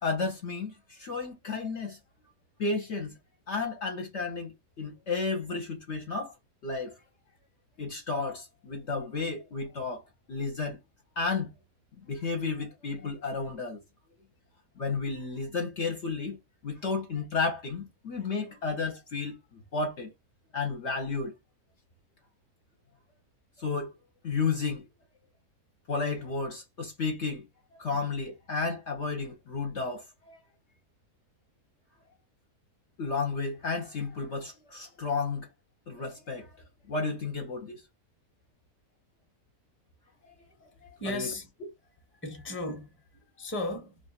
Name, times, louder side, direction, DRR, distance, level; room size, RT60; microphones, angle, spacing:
voice 1, 0.0-2.0 2.6-3.1 3.5-6.3 6.6-6.9 7.8-10.0 10.3-10.8 11.2-11.5 12.1-13.8 14.8-16.4 16.6-19.4 19.7-20.1 20.5-21.3 23.6-24.0 24.2-24.8 25.9-27.4 27.8-30.4 33.0-35.5 35.9-36.5 36.9-37.8 41.1-41.3, left 4 dB, 55° left, 0.9 m, -32 dB
voice 2, 41.0-41.5 42.2-44.0, left 2 dB, 10° left, 0.8 m, -35 dB
3.1 x 2.4 x 4.1 m
omnidirectional pair, 1.6 m